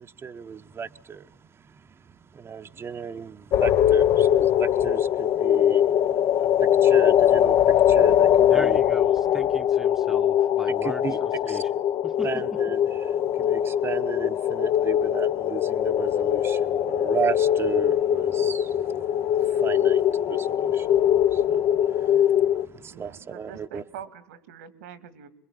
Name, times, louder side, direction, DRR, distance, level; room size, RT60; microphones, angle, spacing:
voice 1, 0.0-1.9 2.3-8.8 10.7-11.2 11.5-11.6 12.2-23.8, right 6 dB, 30° right, 1.0 m, -35 dB
sound 1, 3.5-22.7, left 10 dB, 55° left, 1.2 m, -21 dB
voice 2, 8.5-11.7 12.0-12.6, right 1 dB, 5° right, 1.1 m, -39 dB
voice 3, 22.9-25.3, right 8 dB, 80° right, 2.2 m, -44 dB
27.0 x 21.5 x 10.0 m
hypercardioid pair, 75°, 8 cm